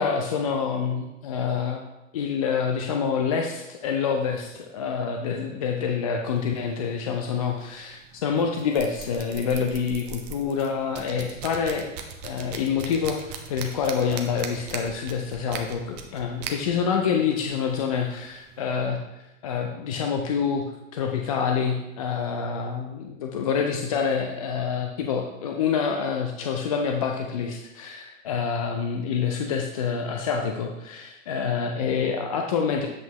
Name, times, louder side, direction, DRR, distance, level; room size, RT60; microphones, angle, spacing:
voice 1, 0.0-1.9 2.1-11.9 12.2-19.0 19.4-20.7 20.9-32.9, left 6 dB, 30° left, 3 dB, 0.4 m, -27 dB
sound 1, 6.2-18.8, right 6 dB, 30° right, 0.7 m, -41 dB
8.1 x 5.3 x 2.9 m, 0.98 s
figure-of-eight pair, 110°, 40 cm